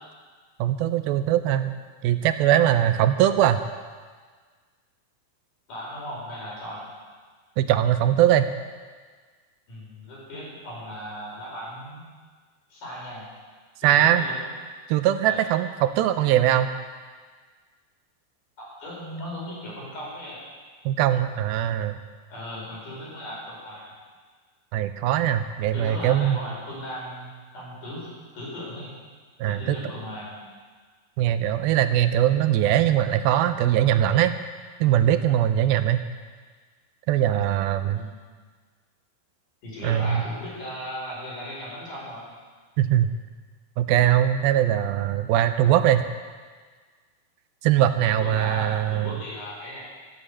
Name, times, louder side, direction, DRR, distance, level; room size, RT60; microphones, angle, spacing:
voice 1, 0.6-1.7 2.0-3.6 7.6-8.5 13.8-14.3 14.9-16.7 20.9-22.0 24.7-26.4 29.4-29.8 31.2-34.3 34.8-36.0 37.1-38.0 39.8-40.2 42.8-43.1 43.8-46.0 47.6-49.1, right 11 dB, 80° right, 10 dB, 2.3 m, -21 dB
voice 2, 5.7-6.8 9.7-12.0 12.7-13.3 13.8-14.4 15.2-15.4 18.6-20.4 22.3-23.8 25.7-28.9 29.4-30.3 37.8-38.1 39.6-42.3 47.8-49.8, equal, 55° left, -5 dB, 6.3 m, -37 dB
14.0 x 7.8 x 8.4 m, 1.5 s
omnidirectional pair, 4.5 m